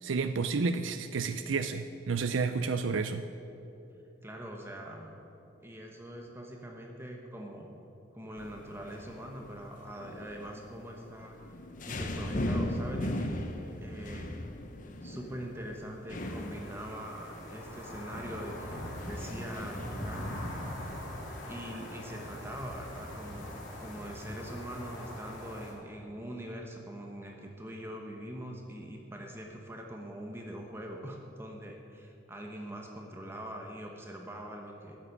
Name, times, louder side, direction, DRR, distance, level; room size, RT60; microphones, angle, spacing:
voice 1, 0.0-3.2, right 4 dB, 90° right, 9 dB, 0.5 m, -31 dB
voice 2, 4.2-5.2 5.6-7.7 8.1-11.4 11.9-13.4 13.8-14.4 15.0-20.3 21.5-35.0, equal, 15° right, 1 dB, 1.1 m, -43 dB
sound 1, 8.4-22.2, left 1 dB, 45° left, 1.0 m, -39 dB
sound 2, 16.2-25.7, left 1 dB, 85° left, 3.6 m, -42 dB
13.0 x 7.5 x 9.6 m, 3.0 s
head